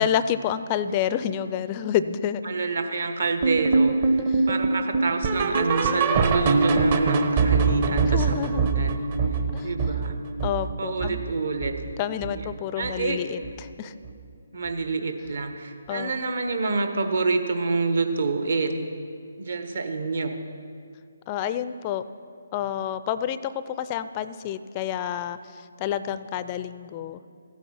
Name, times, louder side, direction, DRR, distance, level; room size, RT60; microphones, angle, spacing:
voice 1, 0.0-2.4 4.3-4.5 8.1-8.7 9.5-9.7 10.4-11.2 12.0-13.9 15.9-16.1 21.3-22.0 22.5-27.2, left 10 dB, 25° left, 13 dB, 0.4 m, -29 dB
voice 2, 2.4-4.2 4.5-9.0 9.6-10.1 10.8-11.7 12.3-12.4 12.8-13.2 14.5-18.8 19.4-20.4, right 3 dB, 60° right, 6 dB, 1.2 m, -27 dB
sound 1, 3.4-12.5 12.8-13.1 13.4-13.5 14.0-14.1 14.7-14.8, right 4 dB, 40° right, 0.9 m, -24 dB
15.0 x 9.1 x 5.9 m, 2.3 s
figure-of-eight pair, 145°, 0 cm